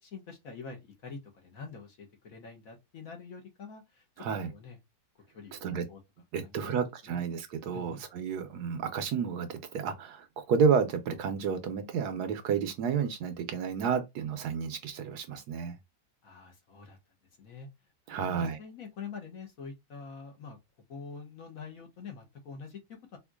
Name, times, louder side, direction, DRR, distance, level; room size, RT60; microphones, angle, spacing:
voice 1, 0.0-4.8 5.3-6.0 6.4-7.2 7.7-8.0 16.2-17.0 17.4-17.7 18.1-20.6 20.9-23.2, left 5 dB, 55° left, 1.4 m, -46 dB
voice 2, 4.2-4.5 5.6-5.8 6.3-15.8 18.1-18.6, right 6 dB, 70° right, 1.2 m, -31 dB
4.3 x 2.5 x 2.2 m
omnidirectional pair, 1.9 m